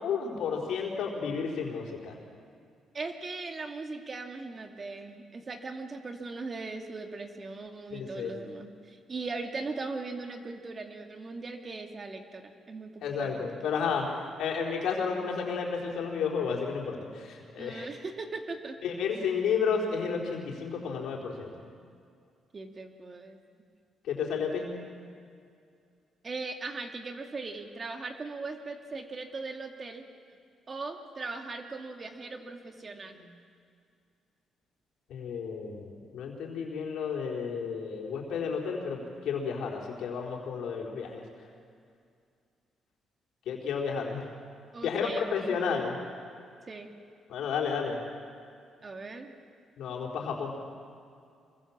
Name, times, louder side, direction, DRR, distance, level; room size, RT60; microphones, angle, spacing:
voice 1, 0.0-2.1 7.9-8.3 13.0-14.1 14.4-17.9 18.8-21.5 24.0-24.7 35.1-41.2 43.5-44.3 44.8-46.0 47.3-48.0 49.8-50.5, left 6 dB, 75° left, -1 dB, 4.6 m, -32 dB
voice 2, 2.9-13.5 13.7-13.8 17.6-18.8 22.5-23.4 26.2-30.0 30.7-33.3 44.7-45.8 46.7-46.9 48.8-49.3, right 3 dB, 35° right, 4 dB, 2.4 m, -39 dB
26.0 x 23.0 x 7.5 m, 2.4 s
cardioid pair, 90°, 0 cm